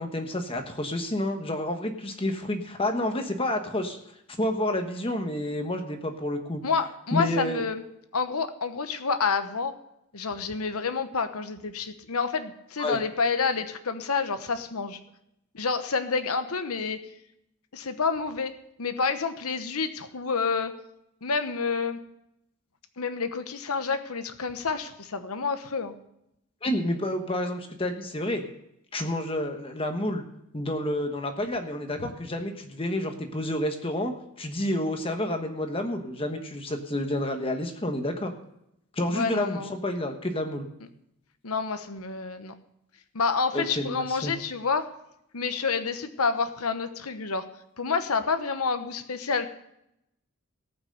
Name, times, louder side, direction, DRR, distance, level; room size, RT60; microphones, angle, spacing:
voice 1, 0.0-4.0 4.4-6.6 7.1-7.6 12.8-13.0 26.6-28.4 28.9-30.2 30.5-34.1 34.4-38.3 38.9-40.7 43.5-44.3, left 1 dB, 25° left, 5 dB, 1.1 m, -29 dB
voice 2, 6.6-7.8 8.1-9.7 10.1-15.0 15.5-17.1 17.7-20.7 21.2-22.0 23.0-25.9 32.0-32.1 39.1-39.7 41.4-42.5 43.1-44.9 45.3-47.5 47.8-49.5, left 5 dB, 75° left, 10 dB, 1.0 m, -28 dB
17.5 x 5.9 x 6.6 m, 0.81 s
head